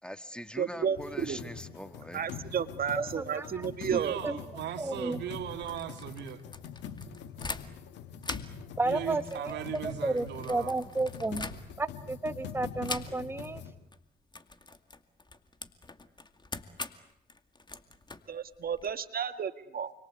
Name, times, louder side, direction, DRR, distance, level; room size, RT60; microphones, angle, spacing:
voice 1, 0.0-2.3, equal, 5° left, 10 dB, 1.8 m, -43 dB
voice 2, 0.6-1.4 2.1-4.2 18.3-19.9, right 7 dB, 55° right, 10 dB, 1.8 m, -32 dB
sound 1, 0.9-13.7, left 7 dB, 80° left, 2.6 m, -44 dB
voice 3, 3.0-4.4 4.8-5.2 8.8-9.6 9.8-11.5 11.8-13.6, right 2 dB, 15° right, 11 dB, 1.3 m, -32 dB
voice 4, 3.8-6.4 8.8-10.8, right 10 dB, 80° right, 7 dB, 2.5 m, -38 dB
sound 2, 5.5-7.9 8.2-12.0 12.8-13.5 13.8-14.0 14.3-18.9, left 3 dB, 25° left, 2.3 m, -43 dB
29.0 x 23.0 x 8.3 m, 0.74 s
supercardioid pair, 60°, 18 cm